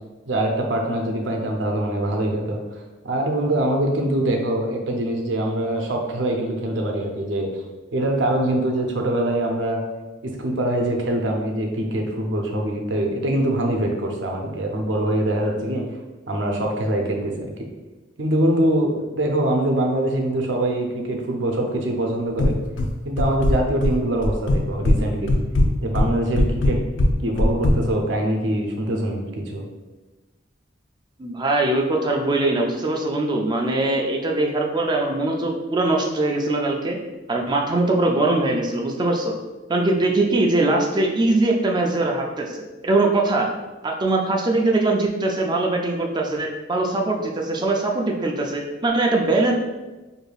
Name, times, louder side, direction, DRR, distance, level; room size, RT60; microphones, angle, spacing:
voice 1, 0.3-7.6 7.9-9.8 10.2-15.8 16.3-17.5 18.2-22.5 23.0-25.3 25.8-26.8 27.2-29.6, right 1 dB, 75° right, 1 dB, 0.6 m, -23 dB
sound 1, 22.4-22.9 23.2-23.9 24.2-25.0 25.3-27.8, left 1 dB, 75° left, 0.4 m, -19 dB
voice 2, 31.2-37.0 37.3-39.3 39.7-42.5 42.8-43.5 43.8-49.5, right 2 dB, 25° right, 1 dB, 0.3 m, -21 dB
4.8 x 2.6 x 2.3 m, 1.2 s
head